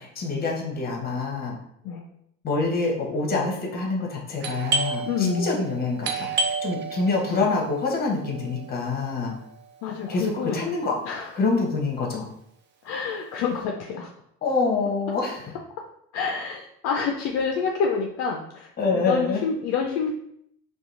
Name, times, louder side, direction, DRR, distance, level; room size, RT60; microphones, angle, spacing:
voice 1, 0.0-1.6 2.4-9.4 10.1-11.0 11.3-12.3 14.4-15.5 18.8-19.4, left 3 dB, 30° left, 0 dB, 0.8 m, -26 dB
Doorbell, 4.4-9.9, right 3 dB, 35° right, 0.4 m, -31 dB
voice 2, 5.1-5.5 9.8-10.7 11.0-11.3 12.8-14.1 16.1-18.7 18.9-20.1, left 5 dB, 55° left, 1 dB, 0.4 m, -27 dB
2.8 x 2.3 x 2.4 m, 0.73 s
supercardioid pair, 90°, 32 cm